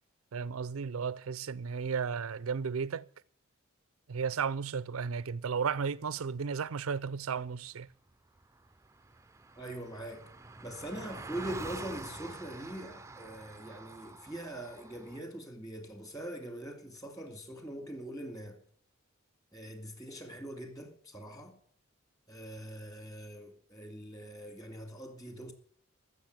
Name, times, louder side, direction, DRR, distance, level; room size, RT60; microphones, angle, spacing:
voice 1, 0.3-3.1 4.1-7.9, right 6 dB, 85° right, 0.5 m, -34 dB
Car passing by, 8.1-8.2 8.4-15.2, right 3 dB, 15° right, 0.5 m, -47 dB
voice 2, 9.6-10.3 10.6-18.6 19.5-21.6 22.3-25.5, right 1 dB, 15° left, 2.3 m, -42 dB
14.5 x 6.6 x 9.2 m
head